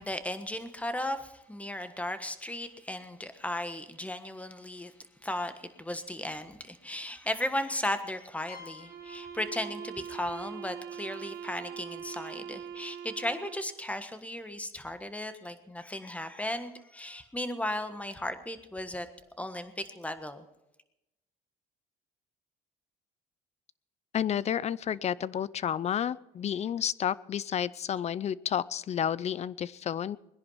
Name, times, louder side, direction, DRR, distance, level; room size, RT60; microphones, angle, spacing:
voice 1, 0.0-4.9 5.2-19.1 19.4-20.4, left 1 dB, 10° left, 10 dB, 1.4 m, -36 dB
sound 1, 8.5-12.1, left 5 dB, 75° left, 2.9 m, -54 dB
sound 2, 8.8-13.7, right 8 dB, 60° right, 2.1 m, -42 dB
voice 2, 24.1-30.2, left 9 dB, 40° left, 21 dB, 0.5 m, -31 dB
21.0 x 10.5 x 5.7 m, 0.91 s
cardioid pair, 110°, 17 cm